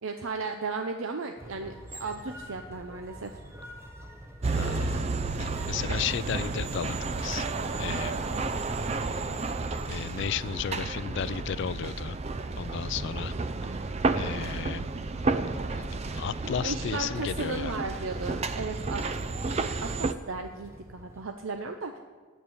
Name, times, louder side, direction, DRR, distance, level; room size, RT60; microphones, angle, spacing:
voice 1, 0.0-3.4 16.6-19.0 19.8-22.0, right 3 dB, 70° right, 6 dB, 0.6 m, -35 dB
sound 1, 1.4-21.3, equal, 10° right, 0.9 m, -49 dB
sound 2, 4.4-20.1, right 3 dB, 30° right, 0.4 m, -31 dB
voice 2, 4.5-5.1 5.4-7.5 7.8-8.2 9.9-12.2 12.6-13.3 13.8-13.9 14.2-14.9 15.7-15.8 16.1-17.8, left 8 dB, 55° left, 17 dB, 0.4 m, -34 dB
9.6 x 7.4 x 8.5 m, 1.5 s
head